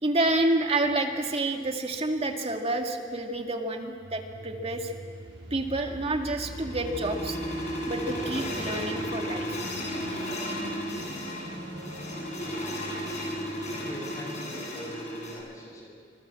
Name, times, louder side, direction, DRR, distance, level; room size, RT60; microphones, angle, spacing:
voice 1, 0.0-4.9 5.5-7.4 7.9-9.6, right 2 dB, 35° right, 4 dB, 2.1 m, -29 dB
sound 1, 4.0-14.2, equal, 80° right, 6.7 m, -42 dB
sound 2, 5.9-15.3, equal, 40° left, 7.7 m, -34 dB
voice 2, 13.7-15.9, equal, 20° left, -1 dB, 7.0 m, -43 dB
26.0 x 21.0 x 7.7 m, 2.1 s
head